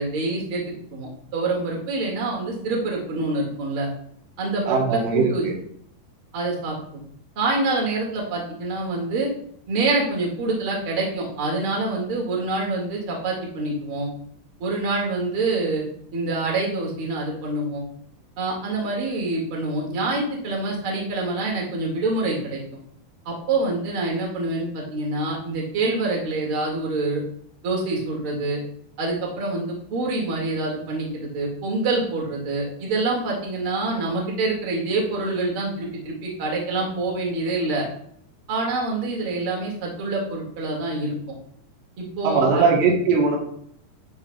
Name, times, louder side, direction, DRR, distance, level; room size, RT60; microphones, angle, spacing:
voice 1, 0.0-3.9 4.4-5.4 6.3-7.0 7.4-9.3 9.7-14.1 14.6-15.8 16.1-17.8 18.4-22.6 23.3-27.2 27.6-28.6 29.0-37.8 38.5-41.2 42.0-42.6, right 2 dB, 40° right, -2 dB, 2.5 m, -26 dB
voice 2, 4.7-5.5 42.2-43.4, right 4 dB, 85° right, 0 dB, 3.6 m, -20 dB
11.5 x 7.3 x 2.4 m, 0.67 s
omnidirectional pair, 4.7 m